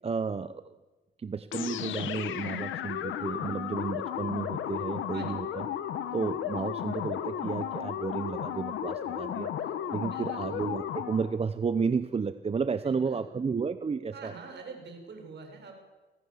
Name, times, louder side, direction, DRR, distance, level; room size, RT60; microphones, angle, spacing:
voice 1, 0.0-0.6 1.2-5.7 6.1-9.5 9.9-14.3, right 5 dB, 30° right, 12 dB, 0.9 m, -32 dB
sound 1, 1.5-11.4, left 10 dB, 80° left, 1.9 m, -34 dB
voice 2, 10.0-10.5 12.8-13.2 14.1-15.7, right 4 dB, 60° right, 4 dB, 7.0 m, -45 dB
24.5 x 18.0 x 7.4 m, 1.2 s
cardioid pair, 90°, 20 cm